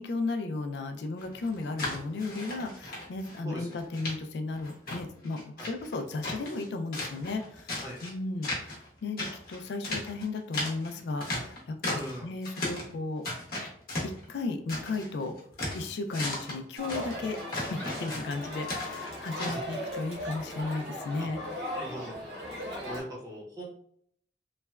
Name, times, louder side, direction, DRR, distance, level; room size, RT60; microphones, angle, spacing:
voice 1, 0.0-7.7 8.0-13.2 14.0-15.3 15.7-17.4 17.7-21.4, left 3 dB, 75° left, 6 dB, 0.3 m, -35 dB
sound 1, 1.2-3.4 3.7-4.1 4.5-6.7 6.9-8.1 8.4-8.9 9.2-12.2 12.4-12.9 13.2-15.1 15.4-19.6, left 1 dB, 55° left, 0.9 m, -36 dB
voice 2, 11.9-12.3 19.4-19.6 21.2-21.3 21.7-22.2 22.8-23.6, equal, 20° right, -5 dB, 0.8 m, -40 dB
Crowd, 16.8-23.0, left 1 dB, 65° right, 1.1 m, -38 dB
3.1 x 2.1 x 2.3 m, 0.66 s
head